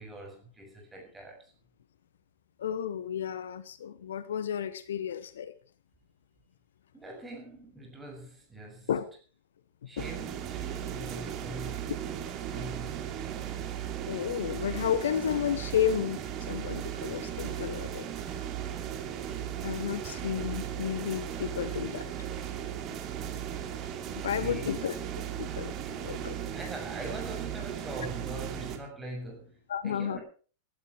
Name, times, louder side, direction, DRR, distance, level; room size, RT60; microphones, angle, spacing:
voice 1, 0.0-1.5 6.9-8.9 9.9-11.9 12.5-13.0 24.2-24.8 25.8-26.2 26.5-30.2, right 1 dB, 10° right, 6.9 m, -43 dB
voice 2, 2.6-5.5 8.9-9.1 9.8-10.1 14.1-16.2 16.5-18.4 19.6-22.3 24.2-24.9 25.4-25.7 26.0-26.3 29.7-30.2, left 9 dB, 65° left, 1.0 m, -32 dB
sound 1, 10.0-28.8, right 10 dB, 35° right, 2.8 m, -36 dB
19.5 x 12.5 x 4.7 m
figure-of-eight pair, 90°, 0 cm